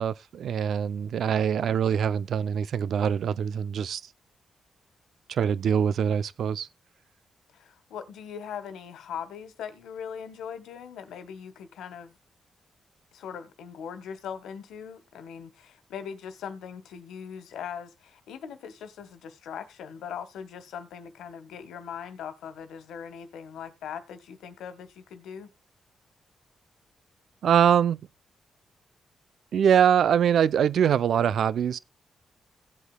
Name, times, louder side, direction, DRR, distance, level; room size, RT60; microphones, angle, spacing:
voice 1, 0.0-4.0 5.3-6.7 27.4-28.1 29.5-31.8, right 8 dB, 75° right, 0.5 m, -23 dB
voice 2, 7.5-12.2 13.1-25.5, left 7 dB, 90° left, 1.4 m, -40 dB
17.0 x 8.1 x 2.2 m
cardioid pair, 70°, 0 cm